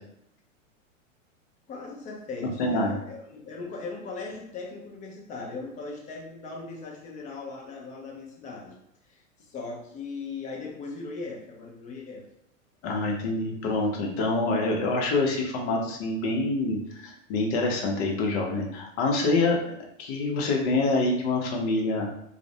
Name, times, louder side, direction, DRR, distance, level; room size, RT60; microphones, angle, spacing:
voice 1, 1.7-8.8 9.0-12.2, left 3 dB, 20° left, -1 dB, 0.5 m, -39 dB
voice 2, 2.6-2.9 12.8-19.6 20.0-22.1, left 2 dB, 50° left, 0 dB, 0.8 m, -26 dB
2.4 x 2.0 x 2.7 m, 0.76 s
hypercardioid pair, 115°, 40 cm